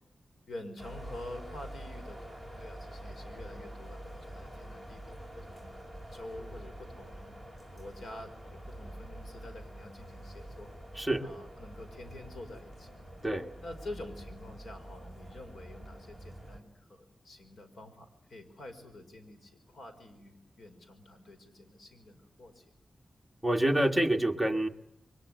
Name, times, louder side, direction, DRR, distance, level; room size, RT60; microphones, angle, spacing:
voice 1, 0.5-7.4 7.7-10.7 11.2-12.9 13.6-22.8, left 1 dB, 75° left, 7 dB, 5.3 m, -48 dB
sound 1, 0.8-16.6, right 1 dB, 20° left, 5.5 m, -46 dB
voice 2, 11.0-11.3 13.2-13.5 23.4-24.7, right 1 dB, 5° left, 6 dB, 1.8 m, -27 dB
29.0 x 23.5 x 8.1 m, 0.73 s
wide cardioid pair, 140°, 0 cm